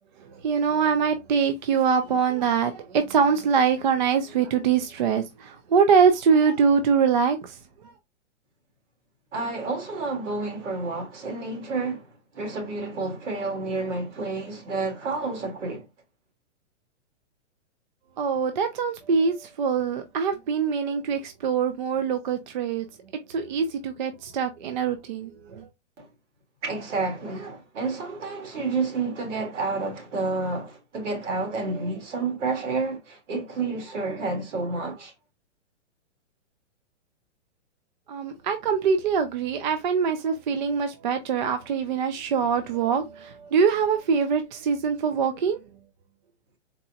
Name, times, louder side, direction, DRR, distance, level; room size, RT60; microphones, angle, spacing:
voice 1, 0.4-7.5 18.2-22.9 23.3-25.7 38.1-45.6, right 6 dB, 40° right, 0.4 m, -23 dB
voice 2, 9.3-15.9 26.0-26.1 26.6-35.1, right 3 dB, 75° right, 1.8 m, -30 dB
4.0 x 2.1 x 2.7 m
hypercardioid pair, 165°, 36 cm